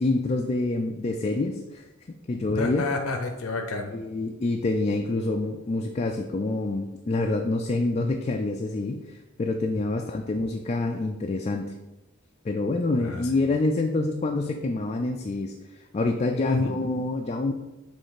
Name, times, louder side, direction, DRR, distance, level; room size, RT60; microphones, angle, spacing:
voice 1, 0.0-1.8 2.3-2.9 3.9-11.7 12.4-15.6 15.9-17.5, left 2 dB, 30° left, 3 dB, 0.3 m, -27 dB
voice 2, 2.5-3.9 12.9-13.4 16.3-16.7, left 3 dB, 85° left, 4 dB, 0.7 m, -30 dB
6.5 x 3.3 x 4.8 m, 1.0 s
head